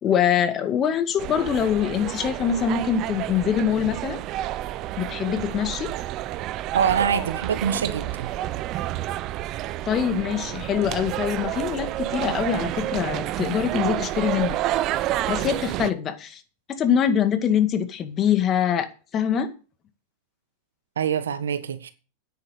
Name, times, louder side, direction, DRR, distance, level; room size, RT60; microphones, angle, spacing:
voice 1, 0.0-4.2 5.0-5.9 9.9-14.6 15.3-16.4 16.7-18.9 19.1-19.5, left 8 dB, 35° left, 2.0 m, -24 dB
sound 1, 1.2-15.9, right 14 dB, 45° right, 0.8 m, -29 dB
voice 2, 6.7-8.3 21.0-21.9, right 7 dB, 80° right, 1.3 m, -24 dB
9.6 x 8.3 x 6.5 m
hypercardioid pair, 100°, 0 cm